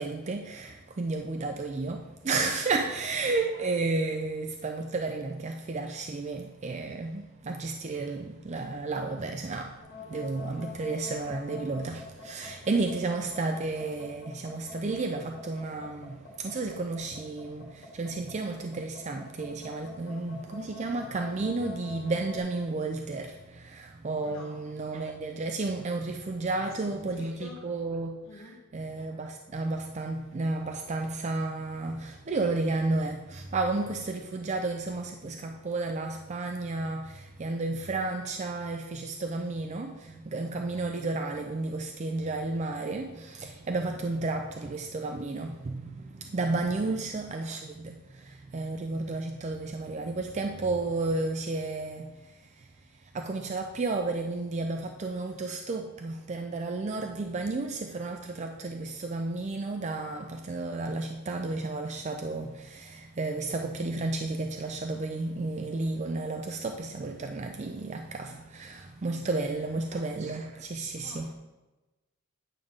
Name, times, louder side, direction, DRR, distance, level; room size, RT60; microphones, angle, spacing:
voice 1, 0.0-28.2 28.7-52.7 53.0-71.3, right 3 dB, 35° right, 0.4 m, -32 dB
sound 1, 9.8-22.4, left 4 dB, 55° left, 1.8 m, -45 dB
voice 2, 24.2-24.6 26.5-27.6 28.2-28.6 43.9-44.1 46.7-47.1 69.2-70.0 70.9-71.3, left 3 dB, 85° left, 1.3 m, -49 dB
8.9 x 3.7 x 6.4 m
head